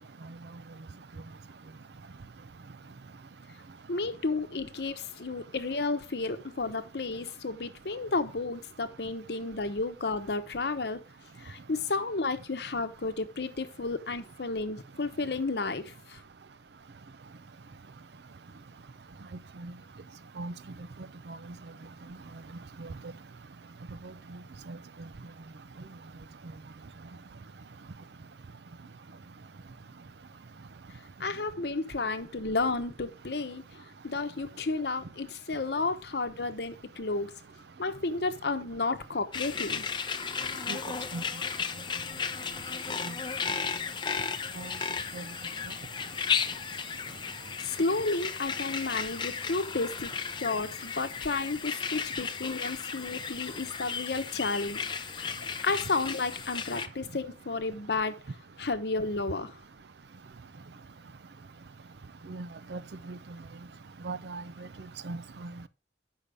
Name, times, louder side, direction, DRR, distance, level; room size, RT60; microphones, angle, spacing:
voice 1, 3.9-11.0 11.4-16.2 31.2-33.6 34.0-37.3 37.8-39.9 47.6-50.1 50.4-54.8 55.1-55.3 55.6-58.2 58.6-59.6, left 3 dB, 65° left, 0.9 m, -32 dB
sound 1, 39.3-56.9, left 6 dB, 25° left, 0.6 m, -35 dB
voice 2, 62.3-62.8 63.1-63.2 64.0-64.4 65.0-65.5, right 3 dB, 65° right, 0.5 m, -38 dB
8.3 x 5.7 x 5.0 m
head